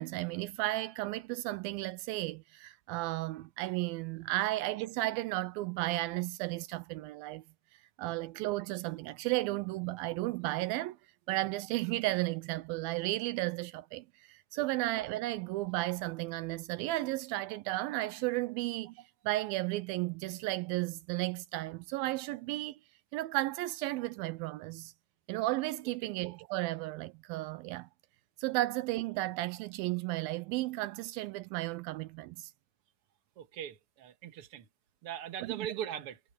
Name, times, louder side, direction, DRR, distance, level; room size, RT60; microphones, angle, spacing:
voice 1, 0.0-7.4 8.0-11.0 11.3-22.8 23.1-24.9 25.3-27.9 28.4-32.5 35.4-35.7, right 18 dB, 85° right, 2.4 m, -34 dB
voice 2, 33.4-34.7 35.0-36.2, right 10 dB, 45° right, 2.1 m, -40 dB
omnidirectional pair, 4.2 m